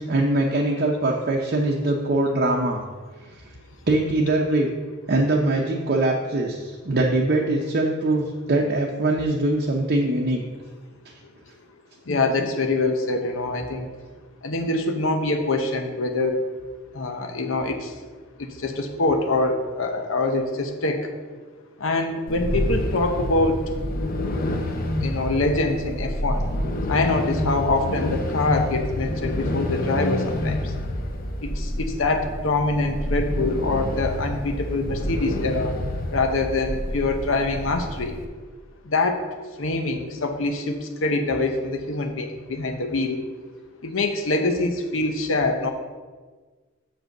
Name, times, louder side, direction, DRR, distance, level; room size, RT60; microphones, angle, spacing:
voice 1, 0.1-2.8 3.3-3.4 3.9-4.7 5.1-10.4, right 2 dB, 50° right, -1 dB, 0.7 m, -22 dB
voice 2, 12.1-13.9 14.4-16.4 16.9-17.9 18.4-21.1 21.8-23.6 25.0-26.5 26.9-30.6 31.4-35.7 36.1-38.2 38.9-39.2 39.6-43.2 43.8-45.7, left 2 dB, 85° left, 5 dB, 0.8 m, -24 dB
sound 1, 22.3-38.3, left 1 dB, 45° left, 0.8 m, -28 dB
6.2 x 5.1 x 6.5 m, 1.4 s
head